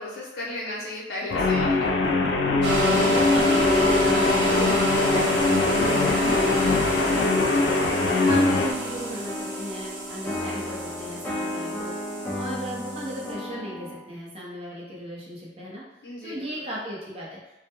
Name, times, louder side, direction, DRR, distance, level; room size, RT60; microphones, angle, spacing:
voice 1, 0.0-2.0 16.0-16.7, left 2 dB, 65° left, -5 dB, 0.8 m, -34 dB
Guitar, 1.3-8.7, left 3 dB, 85° left, 0.3 m, -22 dB
sound 1, 2.6-13.3, equal, 85° right, 0.6 m, -28 dB
voice 2, 3.1-7.6 8.1-11.9 12.3-15.8 16.2-17.4, equal, 35° right, -5 dB, 0.6 m, -36 dB
sound 2, 6.2-14.0, left 1 dB, 10° left, 0.3 m, -34 dB
2.2 x 2.1 x 2.8 m, 0.89 s
head